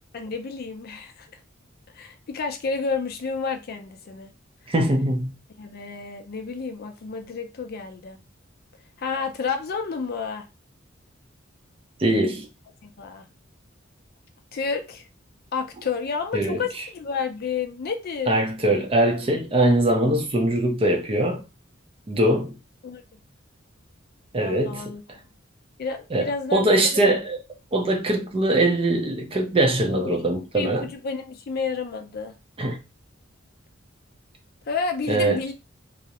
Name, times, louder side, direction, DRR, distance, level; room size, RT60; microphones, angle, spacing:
voice 1, 0.1-1.3 1.9-4.3 5.6-8.2 9.0-10.5 12.8-13.3 14.5-15.1 15.5-18.3 22.8-23.0 24.4-25.0 25.8-26.7 27.0-27.2 29.9-30.2 30.5-32.3 34.7-35.5, left 5 dB, 50° left, 0.4 m, -30 dB
voice 2, 4.7-5.3 12.0-12.5 16.3-16.6 18.3-21.4 22.1-22.6 24.3-24.8 26.1-27.4 27.7-30.9 32.6-32.8 35.1-35.4, right 1 dB, 30° right, 0.5 m, -22 dB
2.4 x 2.0 x 2.8 m
head